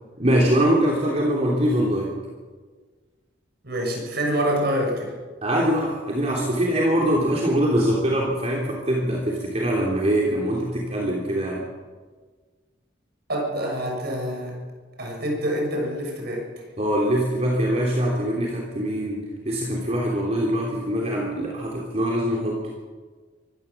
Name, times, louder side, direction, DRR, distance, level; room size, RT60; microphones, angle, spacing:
voice 1, 0.2-2.1 5.4-11.6 16.8-22.6, right 1 dB, 35° right, -2 dB, 3.3 m, -23 dB
voice 2, 3.6-5.1 13.3-14.6 15.0-16.5, equal, 55° right, 1 dB, 7.0 m, -26 dB
24.5 x 15.5 x 7.3 m, 1.4 s
head